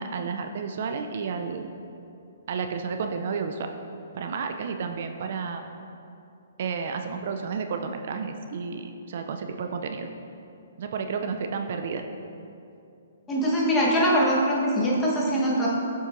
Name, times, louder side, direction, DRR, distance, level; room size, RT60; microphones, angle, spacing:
voice 1, 0.0-1.7 2.5-3.7 4.1-5.6 6.6-10.1 10.8-12.0, right 5 dB, 55° right, 6 dB, 0.3 m, -31 dB
voice 2, 13.3-15.7, equal, 15° left, -5 dB, 1.1 m, -22 dB
7.3 x 5.4 x 2.5 m, 2.7 s
hypercardioid pair, 145°, 0 cm